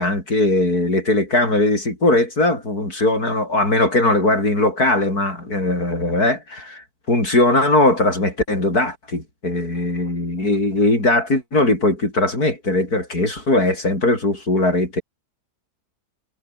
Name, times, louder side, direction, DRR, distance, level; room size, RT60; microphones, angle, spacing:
voice 1, 0.0-15.0, left 2 dB, 55° left, 8.2 m, -19 dB
omnidirectional pair, 1.9 m